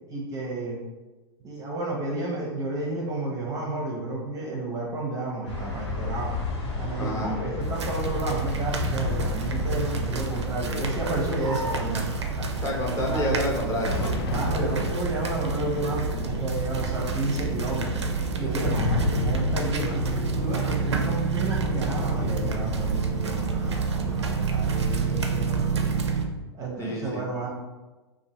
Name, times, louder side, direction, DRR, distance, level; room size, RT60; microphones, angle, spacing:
voice 1, 0.1-0.8 1.4-6.3 6.8-12.5 13.1-13.4 13.9-18.0 18.4-26.0 26.5-27.5, right 2 dB, 25° right, -2 dB, 0.6 m, -31 dB
sound 1, 5.5-12.9, left 4 dB, 80° left, 0.8 m, -33 dB
voice 2, 7.0-7.3 12.6-14.0 26.8-27.3, left 1 dB, 20° left, -3 dB, 0.8 m, -28 dB
sound 2, 7.6-26.3, right 5 dB, 85° right, 0.4 m, -29 dB
sound 3, 13.8-23.2, left 3 dB, 60° left, 0.4 m, -32 dB
2.6 x 2.4 x 2.9 m, 1.2 s
hypercardioid pair, 105°, 14 cm